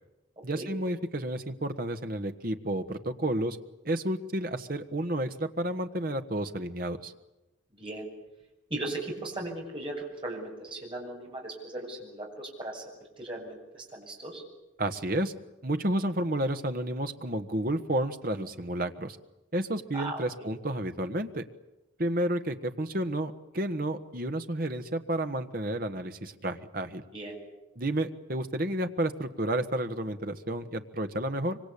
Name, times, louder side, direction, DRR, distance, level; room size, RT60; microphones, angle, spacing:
voice 1, 0.4-3.6 3.8-7.1 14.8-15.3 15.6-19.2 19.5-21.4 22.0-27.0 27.7-31.6, right 1 dB, 45° right, 7 dB, 1.4 m, -31 dB
voice 2, 7.8-8.1 8.7-12.8 13.2-14.4 19.9-20.5 27.1-27.4, right 2 dB, 25° right, -1 dB, 7.1 m, -37 dB
25.5 x 25.0 x 8.6 m, 0.99 s
head